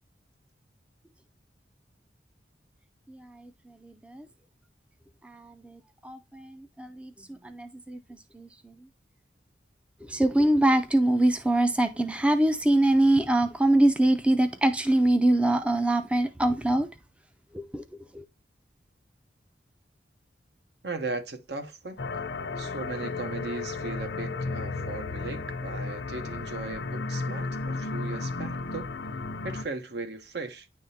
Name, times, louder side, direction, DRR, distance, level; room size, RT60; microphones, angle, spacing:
voice 1, 3.1-3.5 3.8-4.3 5.2-8.7 10.0-16.9 17.5-17.8 18.1-18.2, right 1 dB, 5° right, 0.4 m, -24 dB
voice 2, 20.8-22.0 22.6-28.9 29.4-30.7, right 3 dB, 65° right, 0.9 m, -37 dB
sound 1, 22.0-29.6, left 3 dB, 80° left, 0.6 m, -34 dB
9.7 x 3.6 x 2.7 m
head